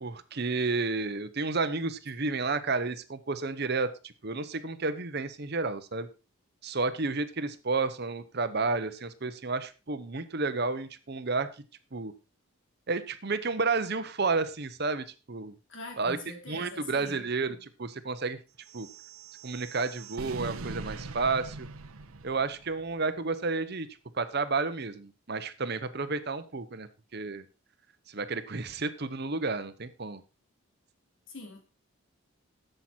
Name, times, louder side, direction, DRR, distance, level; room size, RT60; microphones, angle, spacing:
voice 1, 0.0-6.1 6.6-11.5 11.9-12.1 12.9-15.5 16.0-16.2 16.5-18.4 18.7-18.9 19.4-21.7 22.2-23.9 24.1-27.4 28.1-30.2, right 3 dB, 50° right, 0.9 m, -31 dB
voice 2, 15.7-17.2 31.3-31.6, left 2 dB, 60° left, 3.4 m, -43 dB
sound 1, 18.6-22.9, right 3 dB, 85° right, 0.8 m, -42 dB
11.5 x 7.8 x 4.4 m
head